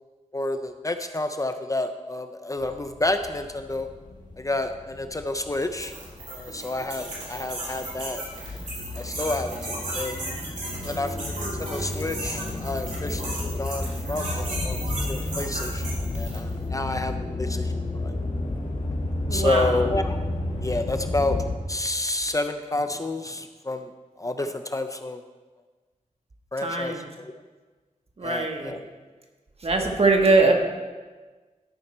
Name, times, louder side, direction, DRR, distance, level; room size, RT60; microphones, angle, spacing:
voice 1, 0.3-3.9 4.4-5.9 6.3-8.2 8.5-8.6 9.0-9.6 9.9-10.2 10.9-14.8 15.1-15.8 16.1-17.7 18.0-18.1 19.3-20.2 20.6-21.4 21.7-23.9 24.2-25.2 26.5-27.4 28.2-28.8, left 2 dB, 25° left, 7 dB, 0.4 m, -29 dB
sound 1, 2.6-21.6, left 2 dB, 75° left, 1.6 m, -32 dB
sound 2, 5.6-16.5, right 2 dB, 75° right, 3.1 m, -36 dB
voice 2, 19.3-19.9 26.6-27.1 28.2-28.8 29.6-30.5, right 3 dB, 50° right, 2 dB, 1.3 m, -22 dB
13.0 x 5.5 x 4.3 m, 1.3 s
wide cardioid pair, 105°, 13 cm